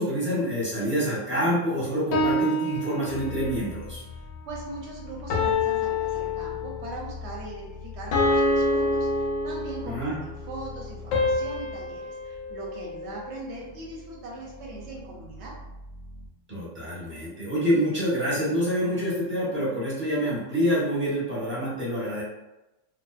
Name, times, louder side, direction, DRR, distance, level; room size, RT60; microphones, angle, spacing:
voice 1, 0.0-4.0 9.8-10.2 16.5-22.2, equal, 10° right, -9 dB, 0.7 m, -27 dB
sound 1, 2.1-3.7 5.3-7.0 8.1-10.0 11.1-13.4, left 2 dB, 85° left, 1.0 m, -27 dB
sound 2, 3.1-16.3, left 4 dB, 60° left, 0.8 m, -43 dB
voice 2, 4.1-15.5, right 2 dB, 65° right, -3 dB, 0.8 m, -40 dB
2.6 x 2.0 x 2.3 m, 0.97 s
omnidirectional pair, 1.3 m